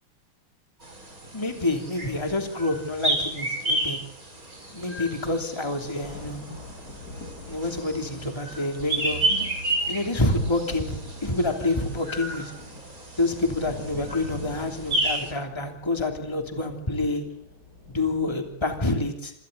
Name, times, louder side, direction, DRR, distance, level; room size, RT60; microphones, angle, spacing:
sound 1, 0.8-15.3, right 2 dB, 40° right, 6.2 m, -32 dB
voice 1, 1.3-4.0 4.7-6.4 7.5-9.5 9.9-12.5 13.2-17.2 17.9-19.3, left 2 dB, 10° left, 3 dB, 3.1 m, -27 dB
sound 2, 4.5-18.5, left 2 dB, 40° left, 8.5 m, -44 dB
27.5 x 27.0 x 4.1 m, 0.75 s
omnidirectional pair, 2.4 m